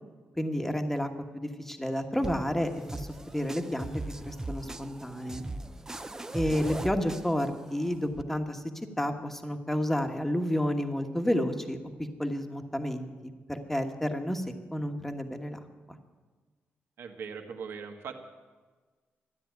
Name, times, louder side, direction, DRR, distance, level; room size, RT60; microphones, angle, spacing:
voice 1, 0.4-3.1 3.3-5.4 6.3-8.6 9.0-14.4 14.7-15.6, equal, 5° left, 6 dB, 1.2 m, -31 dB
sound 1, 2.2-8.2, right 2 dB, 15° right, 0.5 m, -40 dB
voice 2, 17.0-18.1, right 6 dB, 75° right, 5 dB, 1.7 m, -40 dB
13.0 x 9.9 x 9.2 m, 1.4 s
cardioid pair, 130°, 4 cm